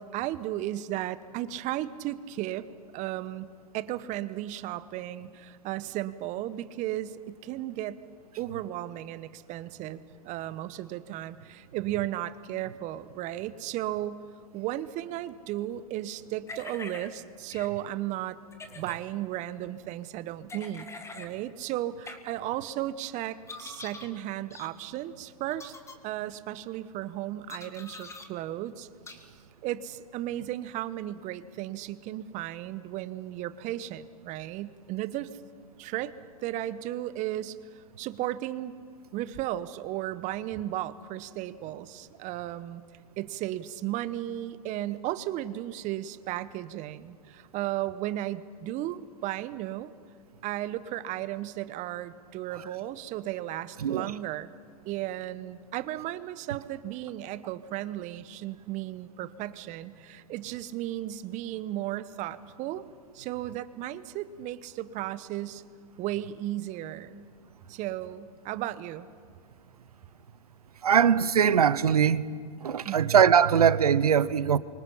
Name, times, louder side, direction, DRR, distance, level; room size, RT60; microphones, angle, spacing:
voice 1, 0.0-2.7 2.9-3.5 3.7-8.0 8.4-14.2 14.5-18.4 18.7-20.9 21.1-25.7 26.0-28.9 29.2-29.3 29.6-35.3 35.8-36.1 36.4-38.7 39.1-42.8 43.2-49.9 50.4-54.5 54.9-62.9 63.1-65.6 66.0-67.3 67.7-69.1 72.8-73.1, right 14 dB, 40° right, 1.1 m, -35 dB
sound 1, 16.5-17.1 17.5-17.7 18.5-19.0 20.5-21.3 22.1-22.2 23.5-24.1 24.5-24.7 25.5-26.0 27.5-28.3 29.1-29.2, left 3 dB, 15° left, 2.2 m, -43 dB
voice 2, 53.8-54.1 70.8-72.2 72.6-74.6, right 8 dB, 85° right, 0.8 m, -21 dB
28.0 x 25.0 x 5.7 m
hypercardioid pair, 105°, 19 cm